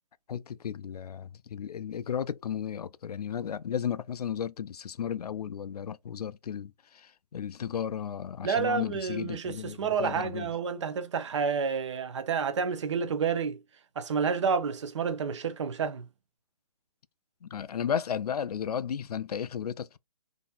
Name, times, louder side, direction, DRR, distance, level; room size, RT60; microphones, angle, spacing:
voice 1, 0.3-10.5 17.4-20.0, left 8 dB, 85° left, 0.4 m, -34 dB
voice 2, 8.4-13.6 14.0-16.0, right 6 dB, 50° right, 0.7 m, -29 dB
3.9 x 2.7 x 2.3 m
hypercardioid pair, 160°, 19 cm